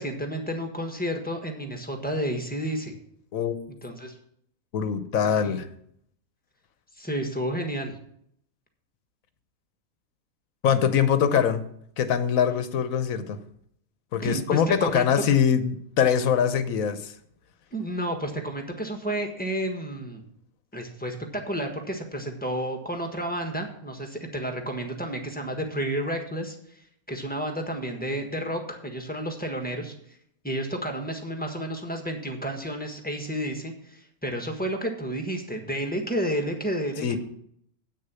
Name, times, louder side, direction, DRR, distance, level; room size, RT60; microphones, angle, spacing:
voice 1, 0.0-3.0 3.8-4.1 5.2-5.6 7.0-7.9 14.2-15.1 17.7-20.2 20.7-26.8 27.1-29.9 30.4-37.2, right 1 dB, 5° left, 3 dB, 1.4 m, -31 dB
voice 2, 4.7-5.6 10.6-11.6 12.0-13.4 14.1-17.1 37.0-37.2, left 8 dB, 70° left, 11 dB, 1.2 m, -23 dB
8.7 x 6.6 x 6.9 m, 0.69 s
omnidirectional pair, 1.5 m